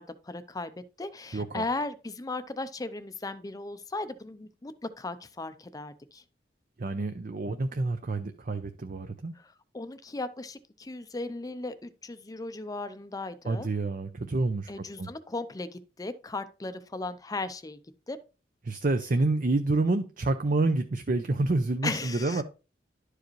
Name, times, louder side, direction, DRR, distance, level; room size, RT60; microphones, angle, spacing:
voice 1, 0.0-6.2 9.3-13.7 14.7-17.8 18.1-18.2 21.8-22.4, left 2 dB, 20° left, 0.5 m, -37 dB
voice 2, 1.3-1.6 6.8-9.3 13.5-14.7 15.0-15.1 18.7-22.4, right 2 dB, 50° right, 0.6 m, -28 dB
11.5 x 4.9 x 3.1 m
head